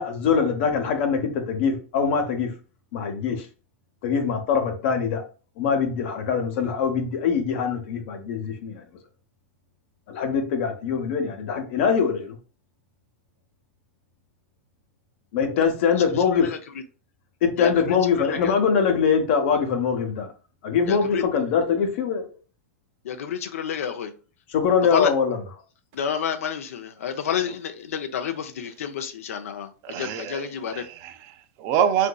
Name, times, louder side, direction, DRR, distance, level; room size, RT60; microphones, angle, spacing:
voice 1, 0.0-2.5 2.9-3.4 4.0-5.2 5.6-8.8 10.1-12.4 15.3-16.6 17.4-20.3 20.6-22.2 24.5-25.5, left 6 dB, 55° left, 0.8 m, -23 dB
voice 2, 23.1-24.1 24.9-25.1 26.0-26.6 27.0-27.5 27.9-28.3 28.8-29.7 30.0-30.7, left 8 dB, 80° left, 0.5 m, -28 dB
voice 3, 29.8-32.1, right 9 dB, 40° right, 0.4 m, -26 dB
3.8 x 2.5 x 2.3 m
hypercardioid pair, 135°, 8 cm